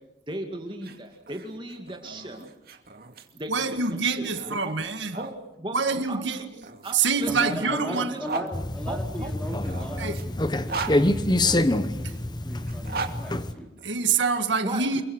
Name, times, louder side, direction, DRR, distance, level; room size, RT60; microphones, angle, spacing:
voice 1, 0.3-2.5 3.3-4.7 5.1-5.8 6.1-6.5 6.8-8.3 8.9-9.3 14.6-14.8, right 1 dB, 25° right, 2.3 m, -37 dB
sound 1, 0.7-5.3 6.3-8.5 9.4-11.8 12.6-14.2, right 3 dB, 50° right, 2.5 m, -38 dB
voice 2, 3.5-5.2 5.7-6.4 6.9-8.1 10.0-10.2 12.0-12.1 13.8-15.0, right 5 dB, 75° right, 2.0 m, -26 dB
voice 3, 7.3-13.7, equal, 5° left, 4.1 m, -38 dB
sound 2, 8.5-13.5, left 1 dB, 20° left, 1.0 m, -26 dB
29.0 x 23.0 x 6.4 m
head